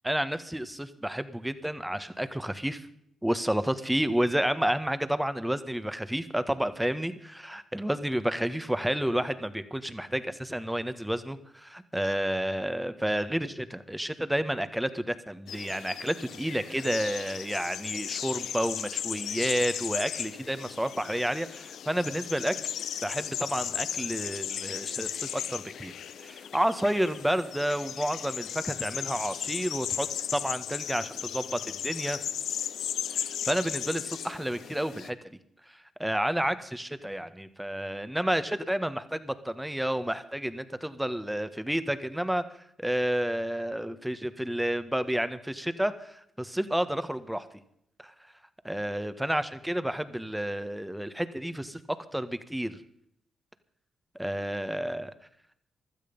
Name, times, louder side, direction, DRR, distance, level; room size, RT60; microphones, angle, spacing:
voice 1, 0.0-2.9 3.2-22.5 23.0-25.9 26.2-32.2 33.1-35.2 35.7-42.4 42.8-47.5 48.0-48.1 48.6-52.8 54.1-55.1, right 1 dB, 5° right, 12 dB, 1.5 m, -30 dB
sound 1, 15.5-35.1, left 9 dB, 70° left, 0.7 m, -36 dB
16.0 x 12.5 x 5.4 m, 0.70 s
supercardioid pair, 45°, 0 cm